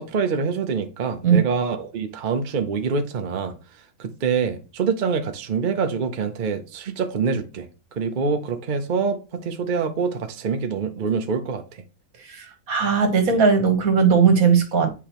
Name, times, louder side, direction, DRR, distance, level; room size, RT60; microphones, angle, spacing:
voice 1, 0.0-3.5 4.0-7.7 8.0-11.8, right 5 dB, 45° right, 0.7 m, -25 dB
voice 2, 12.3-14.9, right 6 dB, 70° right, 1.5 m, -18 dB
8.5 x 4.7 x 3.0 m
omnidirectional pair, 1.6 m